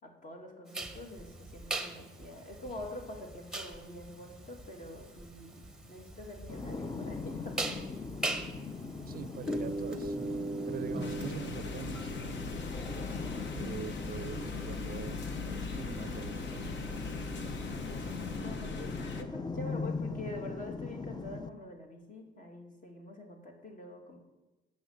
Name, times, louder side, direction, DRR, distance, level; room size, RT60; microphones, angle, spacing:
voice 1, 0.0-7.9 17.8-24.2, left 1 dB, 40° left, 2 dB, 2.4 m, -46 dB
sound 1, 0.7-18.4, right 2 dB, 5° right, 1.0 m, -41 dB
sound 2, 6.5-21.5, left 4 dB, 20° left, 0.5 m, -40 dB
voice 2, 9.1-10.4 10.7-12.6 13.5-16.8 17.2-17.3, right 9 dB, 50° right, 15 dB, 0.5 m, -44 dB
sound 3, 11.0-19.2, left 4 dB, 65° left, 1.0 m, -40 dB
7.9 x 6.4 x 7.9 m, 1.1 s
cardioid pair, 90°, 20 cm